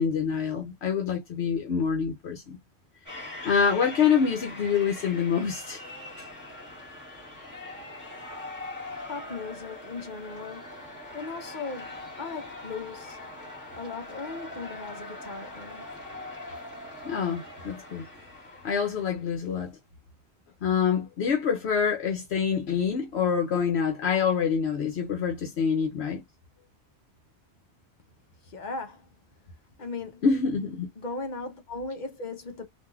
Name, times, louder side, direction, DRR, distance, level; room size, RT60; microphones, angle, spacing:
voice 1, 0.0-2.6 3.4-5.8 6.2-6.3 16.5-16.6 17.0-18.0 18.6-19.7 20.6-26.2 30.2-30.9, left 6 dB, 75° left, 1.0 m, -26 dB
sound 1, 3.1-19.3, left 1 dB, 15° right, 1.5 m, -42 dB
voice 2, 9.1-10.8 11.1-13.2 13.8-15.9 28.4-29.1 29.8-30.2 31.0-32.6, left 4 dB, 50° left, 0.8 m, -37 dB
3.3 x 2.6 x 2.3 m
omnidirectional pair, 1.1 m